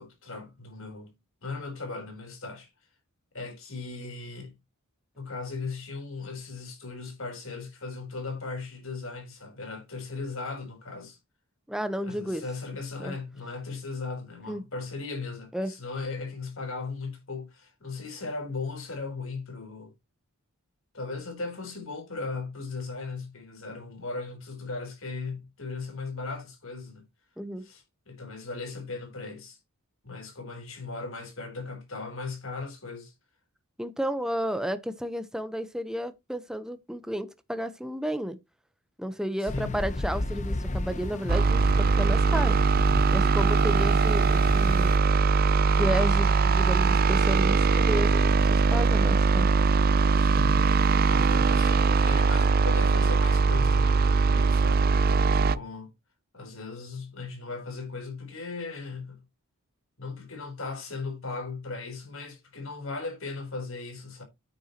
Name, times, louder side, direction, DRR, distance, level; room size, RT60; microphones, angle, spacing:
voice 1, 0.0-2.7 3.3-4.5 5.2-11.2 12.0-19.9 20.9-27.0 27.6-29.6 30.0-33.1 39.4-39.8 43.5-43.8 50.1-50.8 51.1-55.9 56.3-59.2 60.0-64.2, left 3 dB, 65° left, 4.0 m, -37 dB
voice 2, 11.7-12.4 13.0-13.1 14.5-14.6 15.5-15.7 27.4-27.6 33.8-38.4 39.0-42.6 43.1-45.0 45.8-49.5, equal, 5° right, 0.9 m, -32 dB
sound 1, 39.5-45.0, left 1 dB, 35° left, 0.8 m, -34 dB
sound 2, 41.3-55.6, right 4 dB, 45° right, 0.5 m, -21 dB
9.2 x 8.7 x 3.0 m
head